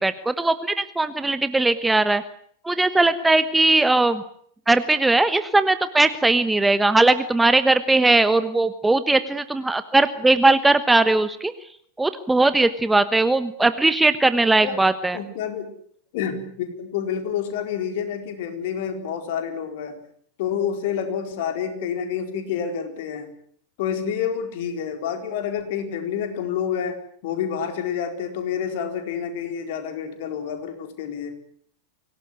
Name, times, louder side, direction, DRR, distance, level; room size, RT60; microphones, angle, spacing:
voice 1, 0.0-2.2 2.6-4.2 4.7-11.5 12.0-15.2, right 2 dB, 5° right, 12 dB, 1.2 m, -19 dB
voice 2, 14.3-14.8 15.1-15.7 16.1-20.0 20.4-23.3 23.8-27.0 27.2-31.4, left 8 dB, 50° left, 6 dB, 4.4 m, -28 dB
24.5 x 18.0 x 9.6 m, 0.64 s
figure-of-eight pair, 90°, 0 cm